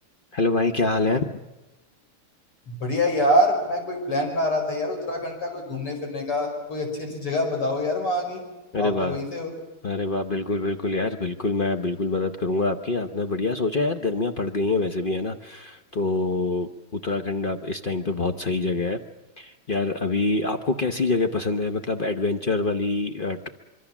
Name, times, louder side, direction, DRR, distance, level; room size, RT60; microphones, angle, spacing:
voice 1, 0.3-1.4 8.7-9.2 9.8-19.0 19.4-23.5, left 3 dB, 55° left, 7 dB, 0.5 m, -25 dB
voice 2, 2.7-8.4 8.8-9.5, left 1 dB, 80° left, 2 dB, 6.3 m, -25 dB
25.5 x 23.5 x 7.3 m, 1.1 s
omnidirectional pair, 2.4 m